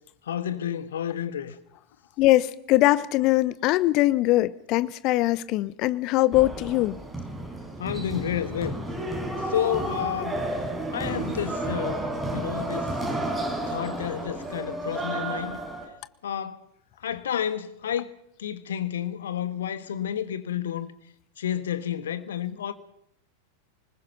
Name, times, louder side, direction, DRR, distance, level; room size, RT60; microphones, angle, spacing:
voice 1, 0.3-1.5 7.8-8.8 9.5-10.4 10.9-12.0 12.3-13.0 13.7-15.6 16.2-16.6 17.0-20.9 21.4-22.7, left 10 dB, 65° left, 1.5 m, -30 dB
voice 2, 2.2-7.0, left 17 dB, 40° left, 0.8 m, -22 dB
sound 1, 6.3-15.8, right 1 dB, 5° right, 6.4 m, -31 dB
25.0 x 20.5 x 5.8 m
figure-of-eight pair, 90°, 0 cm